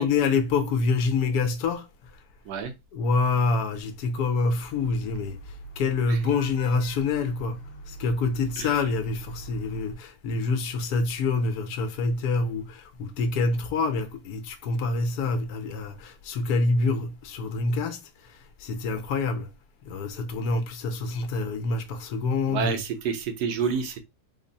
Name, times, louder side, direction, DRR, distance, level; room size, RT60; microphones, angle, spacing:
voice 1, 0.0-1.9 2.9-5.4 5.8-7.6 7.9-19.5 19.9-22.8, left 4 dB, 75° left, 1.2 m, -26 dB
Vehicle horn car horn honking / Traffic noise roadway noise, 4.6-9.9, right 2 dB, 60° left, 1.1 m, -42 dB
voice 2, 22.5-24.0, right 6 dB, 80° right, 1.2 m, -29 dB
3.5 x 2.1 x 3.9 m
omnidirectional pair, 1.7 m